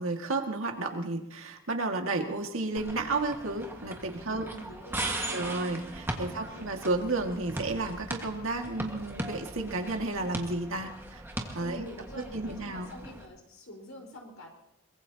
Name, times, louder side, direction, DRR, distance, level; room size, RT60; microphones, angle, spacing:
voice 1, 0.0-4.5 5.3-11.2 11.5-11.9 12.2-12.9, right 2 dB, 80° right, 3 dB, 2.0 m, -32 dB
sound 1, 2.8-13.3, right 1 dB, 10° right, 1.6 m, -39 dB
voice 2, 4.3-5.6 6.3-6.7 11.6-14.5, equal, 80° left, 0 dB, 4.5 m, -46 dB
sound 2, 5.0-12.9, right 3 dB, 25° left, 7.4 m, -55 dB
23.0 x 22.0 x 2.9 m, 0.81 s
head